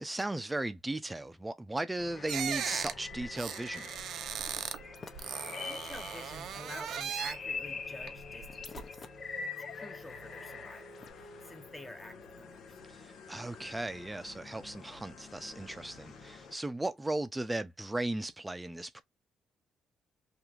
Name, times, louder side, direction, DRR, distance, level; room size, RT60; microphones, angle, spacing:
voice 1, 0.0-3.9 12.9-19.0, right 2 dB, 15° right, 0.5 m, -36 dB
sound 1, 2.0-16.6, left 3 dB, 70° left, 0.9 m, -51 dB
sound 2, 2.2-4.3 4.6-6.5 6.9-11.1, left 4 dB, 45° left, 0.6 m, -43 dB
sound 3, 2.3-4.8 5.1-7.5 8.0-8.8, right 8 dB, 70° right, 0.5 m, -38 dB
voice 2, 5.6-9.1 9.7-12.8, left 1 dB, 15° left, 0.9 m, -49 dB
3.0 x 2.6 x 2.4 m
cardioid pair, 90°, 0 cm